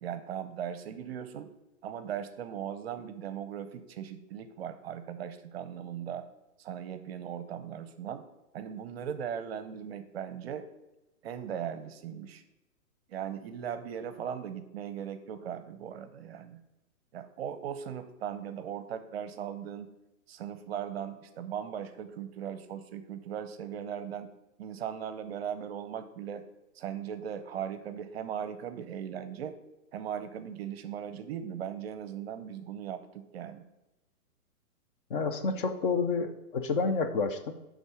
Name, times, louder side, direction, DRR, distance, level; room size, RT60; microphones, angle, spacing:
voice 1, 0.0-1.5 1.8-6.2 6.6-8.2 8.5-10.7 11.2-12.4 13.1-16.6 17.1-19.9 20.3-24.3 24.6-26.4 26.7-29.6 29.9-33.7, right 8 dB, 45° right, 10 dB, 0.6 m, -38 dB
voice 2, 35.1-37.5, left 4 dB, 35° left, 8 dB, 0.6 m, -29 dB
10.5 x 3.7 x 4.8 m, 0.97 s
hypercardioid pair, 125°, 46 cm